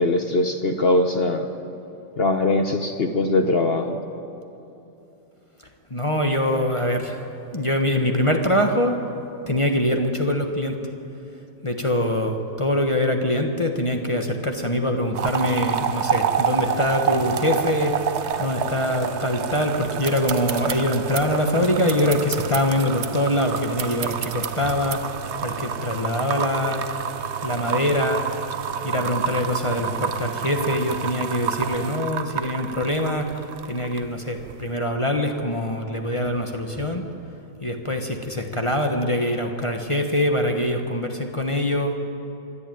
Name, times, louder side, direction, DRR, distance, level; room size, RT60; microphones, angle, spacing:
voice 1, 0.0-1.4 2.2-4.0, left 2 dB, 45° left, 6 dB, 0.8 m, -21 dB
voice 2, 5.9-7.3 7.5-9.0 9.5-10.8 11.6-18.1 18.4-26.8 27.4-28.2 28.8-33.4 33.6-37.0 37.6-42.0, left 1 dB, 20° left, 4 dB, 0.9 m, -24 dB
sound 1, 15.1-34.1 34.4-34.7, right 7 dB, 80° right, 0.6 m, -28 dB
sound 2, 20.0-25.3, right 8 dB, 55° right, 1.2 m, -34 dB
25.5 x 11.5 x 9.1 m, 2.8 s
omnidirectional pair, 2.2 m